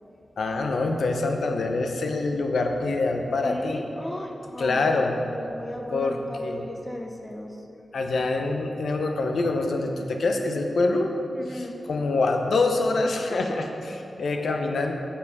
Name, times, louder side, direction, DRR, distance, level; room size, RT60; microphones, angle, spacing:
voice 1, 0.4-3.8 4.6-5.2 5.9-6.7 7.9-11.1 11.5-14.9, left 3 dB, 75° left, 3 dB, 0.9 m, -25 dB
voice 2, 3.4-7.5 11.3-11.8, left 1 dB, 10° left, 2 dB, 0.8 m, -36 dB
13.5 x 7.1 x 3.6 m, 2.9 s
wide cardioid pair, 165°, 0 cm